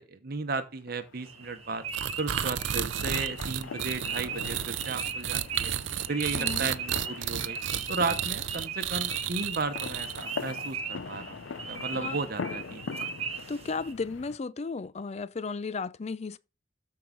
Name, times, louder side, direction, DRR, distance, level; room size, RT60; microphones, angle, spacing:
voice 1, 0.0-1.9 2.2-5.7 6.1-7.6 7.9-11.4 11.7-13.0, right 4 dB, 55° right, 0.9 m, -34 dB
sound 1, 0.9-14.4, left 5 dB, 85° left, 0.5 m, -43 dB
sound 2, 1.1-13.9, right 5 dB, 35° right, 1.2 m, -38 dB
sound 3, 1.9-10.4, right 10 dB, 85° right, 0.6 m, -33 dB
voice 2, 6.3-6.7 11.9-12.2 13.5-16.4, left 4 dB, 35° left, 0.4 m, -34 dB
13.0 x 4.7 x 3.8 m
head